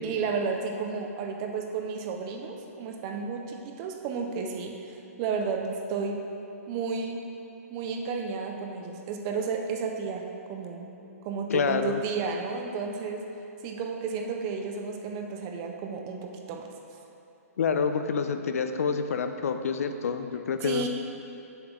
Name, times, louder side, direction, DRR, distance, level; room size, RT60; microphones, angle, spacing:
voice 1, 0.0-6.2 6.7-7.2 7.7-10.9 11.2-13.3 13.6-16.7 20.6-20.9, right 5 dB, 15° right, 3 dB, 0.3 m, -32 dB
voice 2, 11.5-12.0 17.6-20.9, left 5 dB, 65° left, 8 dB, 0.5 m, -27 dB
7.9 x 6.9 x 3.7 m, 2.8 s
hypercardioid pair, 175°, 8 cm